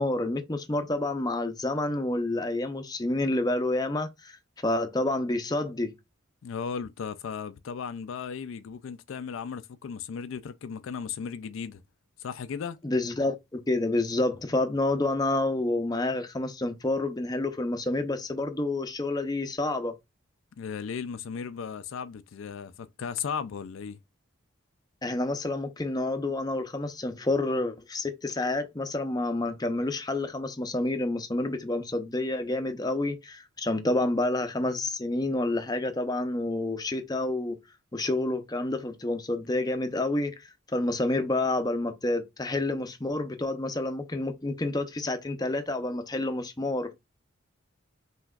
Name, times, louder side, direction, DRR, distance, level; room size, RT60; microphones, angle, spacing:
voice 1, 0.0-4.4 4.6-5.9 12.8-20.0 25.0-37.6 37.9-40.3 40.7-46.9, left 2 dB, 20° left, 0.6 m, -29 dB
voice 2, 6.4-11.8 12.2-12.8 20.6-24.0, left 6 dB, 70° left, 0.4 m, -36 dB
5.7 x 3.0 x 2.3 m
head